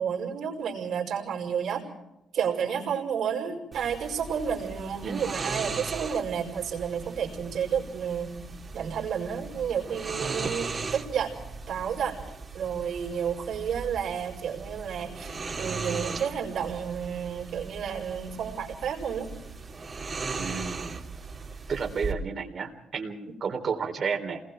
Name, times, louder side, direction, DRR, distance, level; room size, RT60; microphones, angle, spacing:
voice 1, 0.0-1.8 2.3-8.3 8.7-11.4 11.7-12.2 12.5-19.3 23.3-23.4, right 7 dB, 70° right, 1 dB, 5.3 m, -31 dB
sound 1, 3.7-22.1, right 4 dB, 35° right, 3.1 m, -38 dB
voice 2, 20.3-21.0 21.7-24.4, right 5 dB, 50° right, 5 dB, 3.7 m, -32 dB
28.0 x 21.0 x 4.6 m, 0.87 s
cardioid pair, 90°, 0 cm